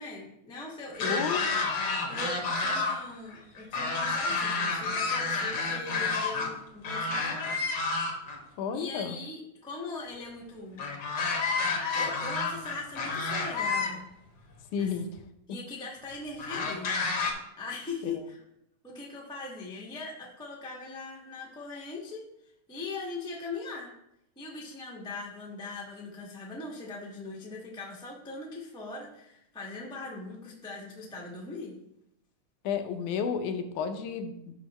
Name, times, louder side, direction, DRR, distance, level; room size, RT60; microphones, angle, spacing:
voice 1, 0.0-1.3 2.1-7.6 8.7-10.8 11.2-11.3 11.8-14.0 14.8-14.9 15.5-17.0 17.6-18.4 18.8-22.2 22.7-23.9 24.4-31.7, left 3 dB, 5° left, -4 dB, 0.3 m, -40 dB
sound 1, 0.9-3.0 3.3-6.5 6.8-8.4 10.8-13.9 14.8-14.9 16.4-17.3, left 3 dB, 55° left, 1.2 m, -30 dB
voice 2, 1.0-1.4 8.6-9.2 14.7-15.2 18.0-18.1 32.6-34.3, left 6 dB, 85° left, 6 dB, 2.3 m, -31 dB
9.8 x 5.7 x 3.1 m, 0.79 s
omnidirectional pair, 3.4 m